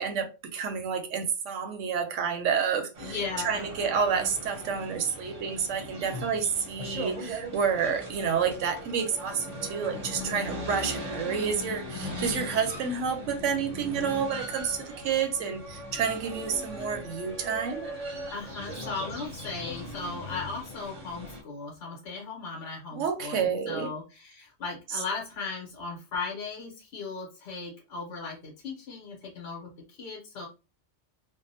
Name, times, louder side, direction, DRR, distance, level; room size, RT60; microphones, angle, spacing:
voice 1, 0.0-3.2 3.4-17.9 23.0-23.9, right 6 dB, 85° right, 0.9 m, -29 dB
sound 1, 2.9-21.4, equal, 35° right, 0.7 m, -39 dB
voice 2, 3.0-3.7 10.1-10.8 18.3-30.5, left 4 dB, 60° left, 1.1 m, -37 dB
2.6 x 2.1 x 2.6 m
omnidirectional pair, 1.2 m